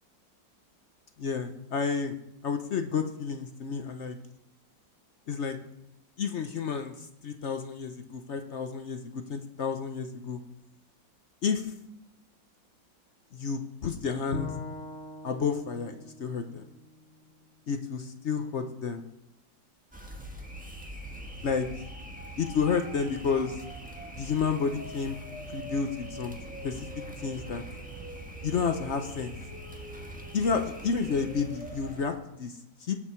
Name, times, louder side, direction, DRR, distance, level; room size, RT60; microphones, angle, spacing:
voice 1, 1.2-2.2 2.4-4.2 5.3-5.6 6.2-10.4 11.4-11.7 13.3-14.5 15.2-16.7 17.7-19.0 21.4-21.7 22.4-23.6 24.1-25.2 25.5-26.9 27.2-27.6 28.4-29.3 30.3-32.9, left 5 dB, 55° left, 7 dB, 0.8 m, -31 dB
Bowed string instrument, 14.3-17.6, left 4 dB, 40° left, 1.2 m, -41 dB
sound 1, 19.9-32.1, right 1 dB, 5° right, 1.2 m, -42 dB
18.5 x 6.4 x 4.5 m, 0.82 s
omnidirectional pair, 2.0 m